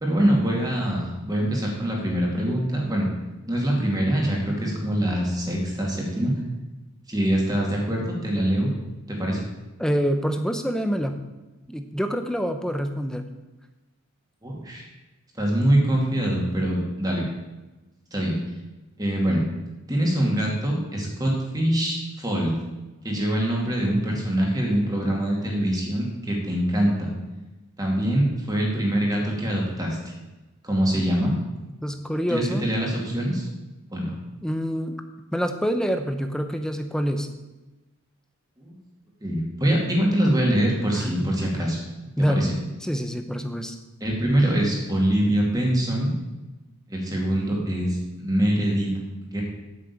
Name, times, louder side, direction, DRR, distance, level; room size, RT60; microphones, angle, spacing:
voice 1, 0.0-3.1 3.4-6.4 7.1-8.7 9.1-9.4 14.4-14.8 15.4-17.2 18.1-18.4 19.0-19.4 19.9-22.5 23.0-27.1 27.8-30.1 30.6-31.3 32.3-33.5 33.9-34.1 38.6-38.8 39.2-41.8 42.3-42.5 44.0-46.1 46.9-48.9 49.2-49.4, right 1 dB, 15° right, -2 dB, 2.5 m, -24 dB
voice 2, 9.8-11.2 11.7-13.3 31.8-32.7 34.4-35.0 35.3-37.3 40.9-41.3 42.2-43.8, equal, 5° left, 7 dB, 0.7 m, -26 dB
8.8 x 6.6 x 8.5 m, 1.1 s
head